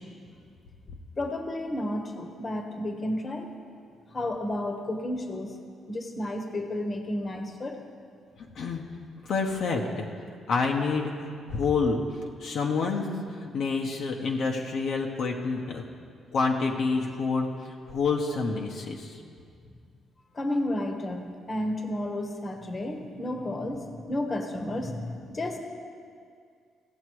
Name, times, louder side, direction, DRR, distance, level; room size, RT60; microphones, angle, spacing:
voice 1, 1.2-3.5 4.1-5.5 5.9-7.9 20.3-25.6, left 1 dB, 35° left, 4 dB, 1.2 m, -32 dB
voice 2, 9.2-10.1 10.5-12.0 12.4-15.8 16.3-19.2, left 4 dB, 65° left, 0 dB, 1.0 m, -28 dB
16.5 x 7.2 x 4.7 m, 2.2 s
cardioid pair, 90°, 0 cm